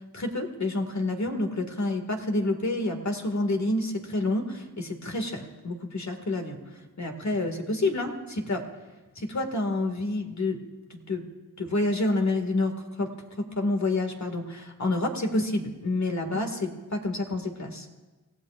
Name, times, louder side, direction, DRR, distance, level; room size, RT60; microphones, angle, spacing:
voice 1, 0.1-6.6 7.0-8.6 9.2-10.6 10.9-11.2 11.6-13.1 13.4-17.9, left 2 dB, 50° left, 4 dB, 2.2 m, -28 dB
27.0 x 15.5 x 2.6 m, 1.2 s
cardioid pair, 50°, 35 cm